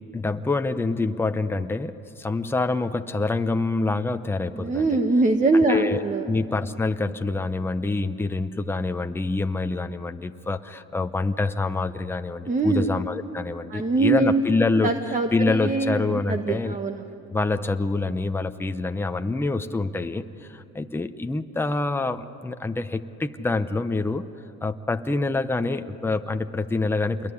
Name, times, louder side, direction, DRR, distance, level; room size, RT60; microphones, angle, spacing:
voice 1, 0.0-5.0 5.7-14.9 15.3-16.8 17.3-24.3 24.6-27.3, left 3 dB, 5° left, 8 dB, 0.8 m, -26 dB
voice 2, 4.5-6.2 12.5-12.9 13.7-14.4 14.8-17.0, right 3 dB, 25° right, 6 dB, 1.4 m, -23 dB
27.5 x 22.0 x 9.8 m, 3.0 s
cardioid pair, 100°, 31 cm